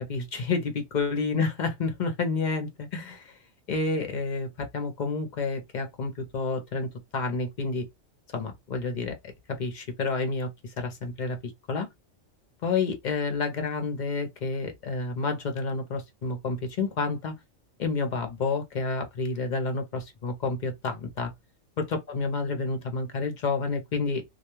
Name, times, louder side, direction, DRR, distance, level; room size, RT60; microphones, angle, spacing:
voice 1, 0.1-3.4 3.7-7.9 8.3-9.2 9.5-11.9 12.6-17.3 17.8-21.3 21.8-24.2, left 4 dB, 50° left, 0.6 m, -29 dB
2.3 x 2.2 x 2.9 m
omnidirectional pair, 1.2 m